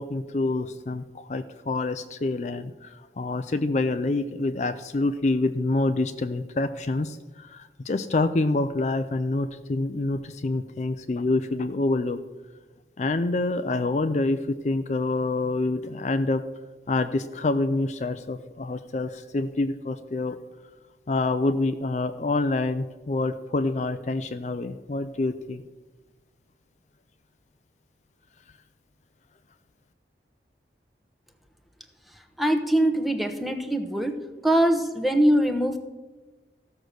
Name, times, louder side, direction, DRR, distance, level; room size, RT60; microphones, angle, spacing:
voice 1, 0.0-12.2 13.0-16.4 16.9-20.4 21.1-25.6, left 2 dB, 40° left, 9 dB, 0.4 m, -27 dB
voice 2, 32.4-34.1 34.4-35.8, right 1 dB, ahead, 5 dB, 0.9 m, -22 dB
15.0 x 6.6 x 6.3 m, 1.2 s
head